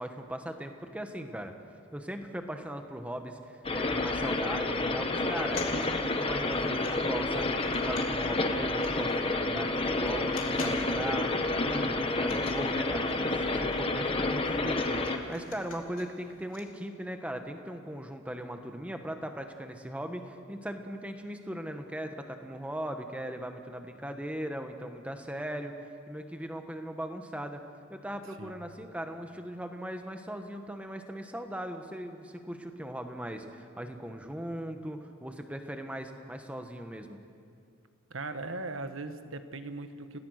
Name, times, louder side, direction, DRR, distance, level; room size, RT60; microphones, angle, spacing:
voice 1, 0.0-1.5 1.9-27.6 27.9-37.2, right 1 dB, 5° right, 6 dB, 1.3 m, -39 dB
sound 1, 3.6-15.2, left 2 dB, 25° left, 1.2 m, -29 dB
sound 2, 5.1-9.3 9.6-9.7 10.0-11.3 11.6-11.7 11.9-16.6, left 4 dB, 80° left, 3.3 m, -46 dB
voice 2, 38.1-40.2, right 2 dB, 70° right, 9 dB, 1.3 m, -39 dB
30.0 x 17.5 x 6.5 m, 2.4 s
head